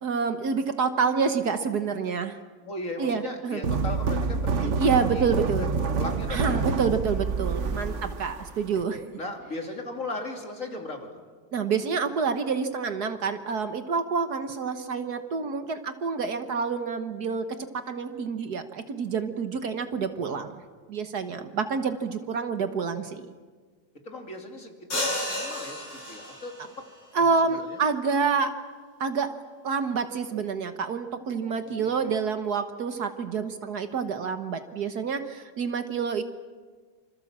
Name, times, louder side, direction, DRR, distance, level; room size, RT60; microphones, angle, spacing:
voice 1, 0.0-2.4 3.0-3.6 4.8-5.7 6.3-9.0 11.5-17.5 17.7-20.6 20.9-23.3 27.1-28.5 29.0-29.4 29.6-36.2, right 5 dB, 60° right, 9 dB, 1.7 m, -28 dB
voice 2, 2.6-5.3 5.7-8.0 9.2-11.2 21.4-21.5 24.0-26.7 27.1-27.8 31.5-32.1, left 2 dB, 45° left, 3 dB, 3.3 m, -38 dB
sound 1, 3.6-8.8, right 5 dB, 45° right, 1.3 m, -27 dB
sound 2, 24.9-26.7, left 1 dB, 80° left, 8.3 m, -31 dB
26.5 x 26.0 x 7.4 m, 1.5 s
omnidirectional pair, 2.0 m